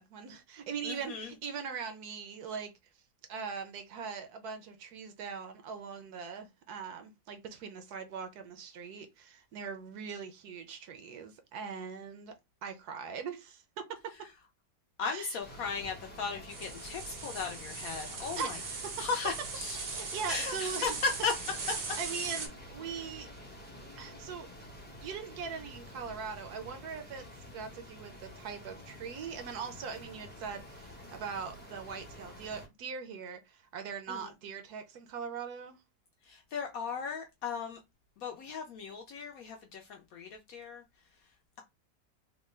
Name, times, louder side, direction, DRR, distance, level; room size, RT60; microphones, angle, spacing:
voice 1, 0.0-2.7 3.3-12.3 12.6-14.3 15.0-15.4 18.4-19.1 20.0-21.0 22.0-23.3 24.0-24.5 25.0-35.8, right 6 dB, 70° right, 1.0 m, -41 dB
voice 2, 0.8-1.3 15.0-18.6 19.0-19.8 20.3-21.3 34.1-34.3 36.3-37.8 38.2-40.8, left 5 dB, 70° left, 0.8 m, -36 dB
sound 1, 15.4-32.7, equal, 10° left, 0.5 m, -49 dB
sound 2, 16.5-22.5, right 4 dB, 55° right, 0.7 m, -39 dB
3.5 x 2.1 x 3.1 m
omnidirectional pair, 1.9 m